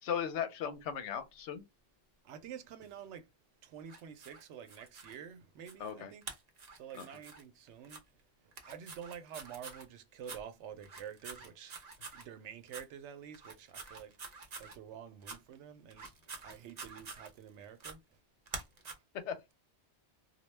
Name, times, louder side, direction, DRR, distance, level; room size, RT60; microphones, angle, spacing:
voice 1, 0.0-1.7 5.8-6.1 6.9-7.1 19.1-19.5, left 8 dB, 85° left, 0.9 m, -37 dB
voice 2, 2.2-3.3 3.6-6.2 6.7-8.0 8.4-11.8 12.1-14.2 14.6-18.2 18.9-19.0, right 8 dB, 80° right, 0.9 m, -49 dB
sound 1, 3.9-5.2 5.7-5.9 6.2-7.4 7.8-8.0 8.5-9.9 10.2-10.4 10.8-12.3 12.7-12.9 13.3-14.8 15.2-15.4 15.9-17.5 17.8-18.0 18.5-18.9, right 4 dB, 45° right, 0.6 m, -47 dB
2.2 x 2.1 x 3.1 m
omnidirectional pair, 1.2 m